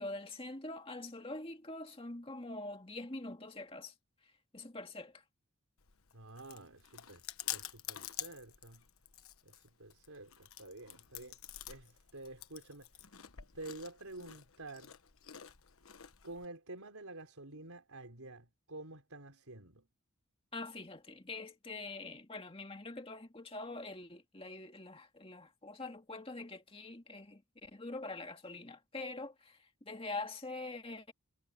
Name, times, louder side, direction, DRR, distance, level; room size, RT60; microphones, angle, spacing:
voice 1, 0.0-3.9 4.5-5.2 20.5-31.1, left 2 dB, 25° left, 2.2 m, -44 dB
Chewing mastication, 5.8-16.5, left 12 dB, 75° left, 1.2 m, -48 dB
voice 2, 6.1-7.2 7.5-8.9 9.4-11.4 11.7-12.9 13.5-14.9 16.2-19.9, right 2 dB, 80° right, 4.1 m, -49 dB
head